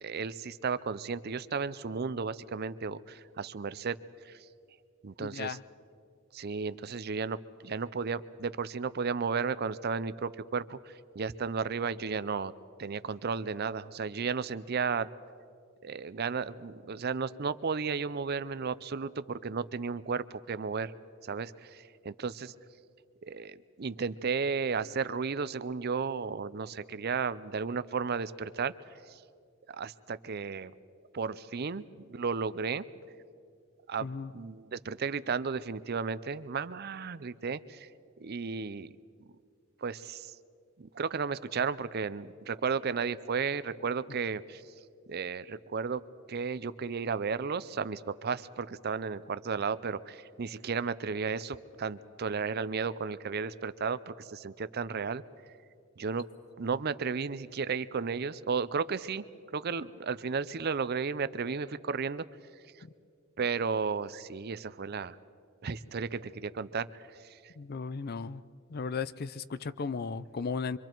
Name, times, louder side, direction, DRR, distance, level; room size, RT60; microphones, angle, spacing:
voice 1, 0.0-4.0 4.2-4.4 5.0-5.6 6.3-7.4 7.6-12.5 12.8-15.1 15.8-20.9 21.2-22.5 23.2-28.7 29.1-29.2 29.7-30.7 31.1-32.8 33.9-34.1 34.3-37.9 38.2-38.9 39.8-40.3 40.8-44.6 45.1-46.0 46.3-55.2 56.0-56.3 56.6-59.2 59.5-62.2 63.4-65.2 65.6-67.4, right 5 dB, 50° right, 15 dB, 0.5 m, -34 dB
voice 2, 5.2-5.6 34.0-34.3 62.8-62.9 67.6-68.4 68.7-70.8, left 5 dB, 50° left, 16 dB, 0.5 m, -36 dB
26.0 x 25.0 x 4.6 m, 2.3 s
head